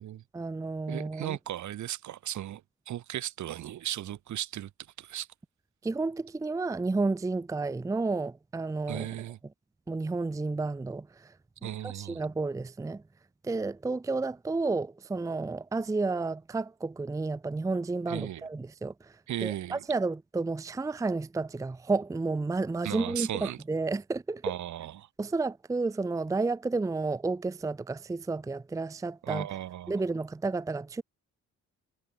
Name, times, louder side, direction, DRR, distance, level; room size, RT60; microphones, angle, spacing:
voice 1, 0.3-1.4 5.8-9.1 9.9-11.3 11.6-13.0 13.4-19.1 19.4-24.4 25.2-29.5 29.9-31.0, right 3 dB, 10° right, 0.5 m, -31 dB
voice 2, 0.9-4.7 5.0-5.3 8.9-9.4 11.6-12.2 18.1-18.4 19.3-19.8 22.8-23.6 24.4-25.1 29.2-30.0, right 12 dB, 70° right, 2.2 m, -36 dB
cardioid pair, 90°, 30 cm